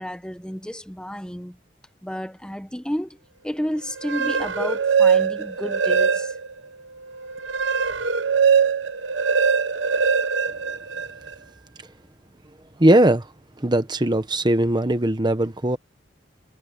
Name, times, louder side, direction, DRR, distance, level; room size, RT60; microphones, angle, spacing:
voice 1, 0.0-1.6 2.0-6.4, equal, 5° left, 1.1 m, -31 dB
sound 1, 3.9-6.6 7.0-11.3, right 6 dB, 85° right, 1.0 m, -22 dB
voice 2, 12.8-13.3 13.6-15.8, right 1 dB, 25° right, 1.1 m, -19 dB
head